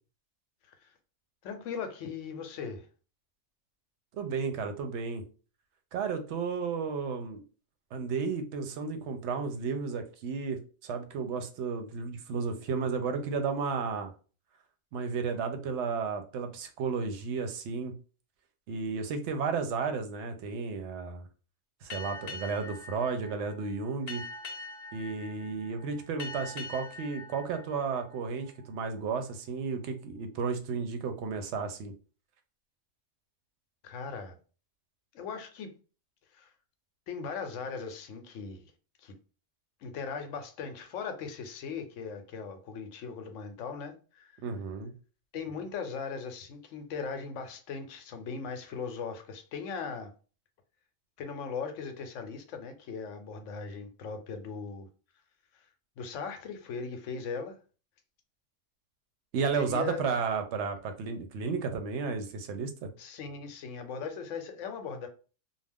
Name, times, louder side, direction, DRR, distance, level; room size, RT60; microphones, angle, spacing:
voice 1, 1.4-2.9 33.8-34.4 35.1-35.7 36.3-36.5 37.1-38.7 39.0-39.1 39.8-44.4 45.3-50.1 51.2-54.9 55.5-55.6 56.0-57.6 59.5-60.0 63.0-65.1, left 5 dB, 75° left, 0.9 m, -39 dB
voice 2, 4.1-5.2 5.9-7.4 7.9-14.1 14.9-17.9 18.7-21.3 21.8-24.2 24.9-31.9 44.4-44.9 59.3-62.9, right 5 dB, 70° right, 0.8 m, -33 dB
Boat Water vehicle, 21.9-29.0, left 3 dB, 45° left, 0.5 m, -44 dB
2.4 x 2.2 x 3.4 m
omnidirectional pair, 1.3 m